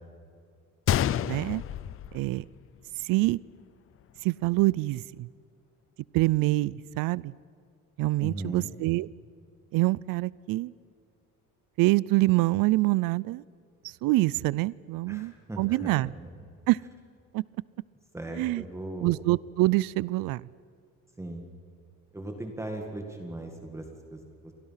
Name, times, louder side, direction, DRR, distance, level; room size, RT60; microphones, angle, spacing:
Gunshot gunfire, 0.9-2.9 3.2-3.3 4.0-4.2, left 11 dB, 40° left, 0.5 m, -29 dB
voice 1, 1.3-1.6 2.1-2.4 3.0-3.4 4.2-5.3 6.1-7.3 8.0-9.1 9.7-10.7 11.8-13.4 13.8-16.1 16.7-16.8 17.3-17.4 18.4-18.6 19.0-20.4, right 20 dB, 75° right, 22 dB, 0.5 m, -25 dB
voice 2, 8.2-8.7 15.1-16.3 18.1-19.1 21.2-21.4 22.1-24.5, right 1 dB, 10° right, 3 dB, 1.8 m, -38 dB
29.5 x 24.0 x 5.7 m, 2.4 s
cardioid pair, 180°, 34 cm